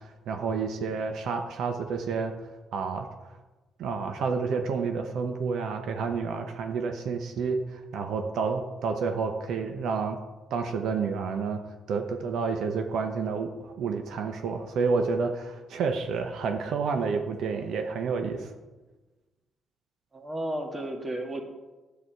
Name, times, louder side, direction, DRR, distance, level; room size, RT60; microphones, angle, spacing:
voice 1, 0.0-2.3 2.7-3.1 3.8-10.2 10.5-11.6 11.9-18.5, right 5 dB, 75° right, 5 dB, 0.8 m, -29 dB
voice 2, 20.1-21.4, right 1 dB, 25° right, 4 dB, 1.7 m, -33 dB
10.0 x 8.4 x 4.7 m, 1.2 s
cardioid pair, 90°, 0 cm